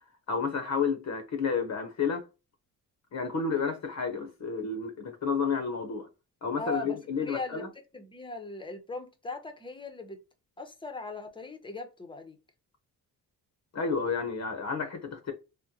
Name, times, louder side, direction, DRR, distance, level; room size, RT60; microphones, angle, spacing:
voice 1, 0.3-2.3 3.1-6.1 6.4-7.7 13.7-15.3, left 5 dB, 50° left, 0.7 m, -31 dB
voice 2, 6.6-7.7 7.9-10.2 10.6-12.4, left 2 dB, 15° left, 0.7 m, -39 dB
3.6 x 2.1 x 2.7 m
cardioid pair, 125°, 36 cm